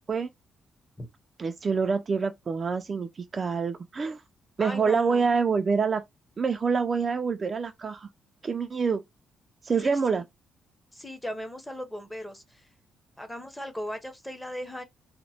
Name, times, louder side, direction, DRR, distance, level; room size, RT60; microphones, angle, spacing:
voice 1, 1.4-4.2 4.6-6.0 6.4-8.1 8.4-9.0 9.6-10.2, right 5 dB, 30° right, 0.4 m, -26 dB
voice 2, 4.6-5.3 9.8-10.2 10.9-12.7 13.2-14.8, left 1 dB, 5° left, 0.7 m, -38 dB
2.9 x 2.1 x 4.1 m
cardioid pair, 145°, 0 cm